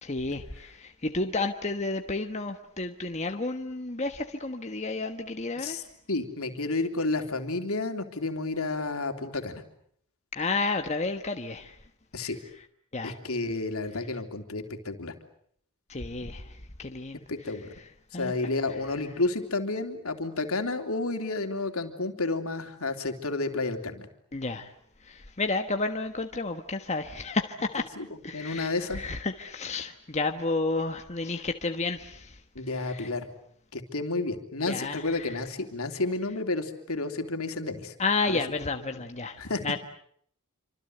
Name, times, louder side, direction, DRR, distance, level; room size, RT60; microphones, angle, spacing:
voice 1, 0.0-5.8 10.3-11.8 12.2-12.3 12.9-13.2 15.9-17.2 18.1-18.3 24.3-24.7 25.0-27.9 28.2-32.4 32.8-33.1 34.7-35.3 38.0-39.8, left 3 dB, 30° left, 5 dB, 1.3 m, -31 dB
voice 2, 6.1-9.6 12.1-12.4 13.0-15.1 17.3-17.7 18.1-24.0 28.0-28.1 28.3-29.0 32.5-33.3 33.7-37.9 38.3-38.8 39.4-39.8, left 3 dB, 70° left, 6 dB, 3.3 m, -31 dB
28.0 x 26.0 x 8.0 m, 0.66 s
head